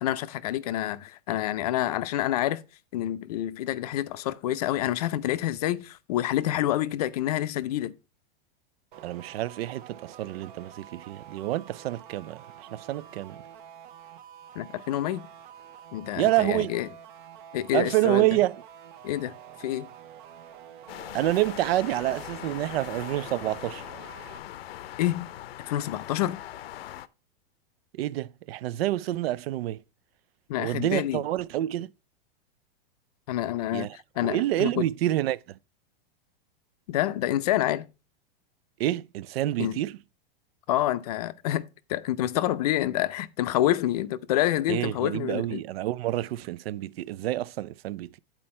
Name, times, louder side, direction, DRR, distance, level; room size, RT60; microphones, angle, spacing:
voice 1, 0.0-2.6 2.9-8.0 14.6-15.2 15.9-16.9 17.5-18.3 19.0-19.9 25.0-25.3 25.7-26.4 30.5-31.2 33.3-34.8 36.9-37.9 39.6-39.8 40.7-41.6 41.9-45.6, left 13 dB, 40° left, 0.4 m, -28 dB
sound 1, 8.9-24.4, right 9 dB, 55° right, 0.9 m, -48 dB
voice 2, 9.0-13.4 16.2-16.7 17.7-18.6 21.1-23.8 27.9-29.8 30.6-31.9 33.7-33.9 34.2-35.6 38.8-40.0 44.7-48.2, right 15 dB, 80° right, 0.4 m, -28 dB
sound 2, 20.9-27.1, left 13 dB, 85° left, 0.6 m, -41 dB
9.6 x 4.5 x 4.2 m
supercardioid pair, 170°, 30 cm